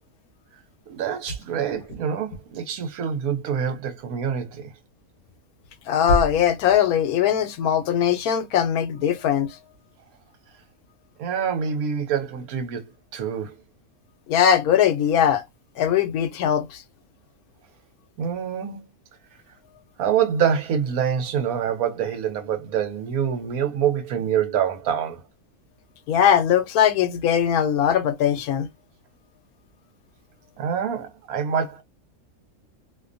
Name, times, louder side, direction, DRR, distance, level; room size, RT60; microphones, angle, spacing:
voice 1, 0.9-4.7 11.2-13.5 18.2-18.8 20.0-25.2 30.6-31.8, right 8 dB, 80° right, 1.2 m, -26 dB
voice 2, 5.9-9.6 14.3-15.4 15.8-16.8 26.1-28.7, left 9 dB, 85° left, 1.1 m, -20 dB
2.7 x 2.2 x 2.4 m
omnidirectional pair, 1.5 m